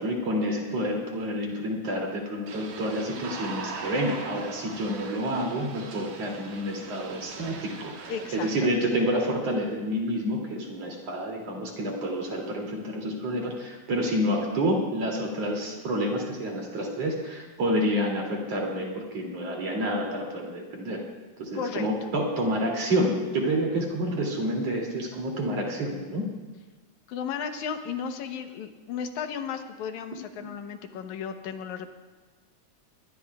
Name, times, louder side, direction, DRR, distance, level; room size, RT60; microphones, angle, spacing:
voice 1, 0.0-21.0 21.4-26.3 30.1-30.5, equal, 60° right, -1 dB, 3.8 m, -29 dB
sound 1, 2.5-8.6, right 4 dB, 75° right, 2.6 m, -40 dB
voice 2, 8.1-8.7 21.5-21.9 27.1-31.9, left 6 dB, 80° left, 6 dB, 2.4 m, -34 dB
23.0 x 20.5 x 2.4 m, 1.3 s
omnidirectional pair, 3.3 m